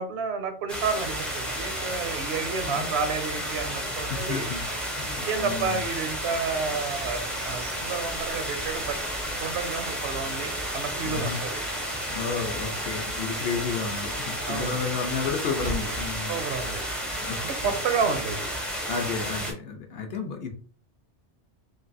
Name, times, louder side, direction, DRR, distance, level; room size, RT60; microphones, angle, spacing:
voice 1, 0.0-4.5 5.2-9.0 9.4-11.6 14.4-14.8 16.3-16.9 17.4-18.5, right 5 dB, 70° right, 6 dB, 0.8 m, -30 dB
sound 1, 0.7-19.5, equal, ahead, 0.4 m, -32 dB
voice 2, 3.7-4.6 4.9-5.8 11.0-11.4 12.1-16.5 17.2-17.7 18.9-20.5, left 5 dB, 65° left, 4 dB, 0.8 m, -32 dB
sound 2, 6.3-16.9, right 1 dB, 90° right, 1.1 m, -44 dB
3.2 x 2.3 x 2.6 m, 0.41 s
omnidirectional pair, 1.2 m